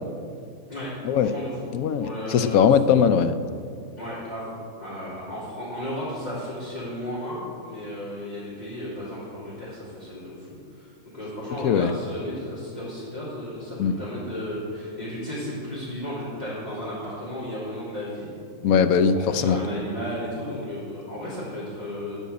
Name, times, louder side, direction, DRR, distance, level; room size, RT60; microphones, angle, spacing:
voice 1, 0.7-1.7 2.0-2.6 4.0-10.5 10.7-10.9 11.1-18.3 19.3-22.2, equal, 30° left, -12 dB, 3.6 m, -34 dB
voice 2, 1.7-3.3 11.6-11.9 13.8-14.0 18.6-19.6, left 7 dB, 75° left, 10 dB, 1.0 m, -20 dB
12.5 x 5.5 x 8.4 m, 2.4 s
omnidirectional pair, 1.6 m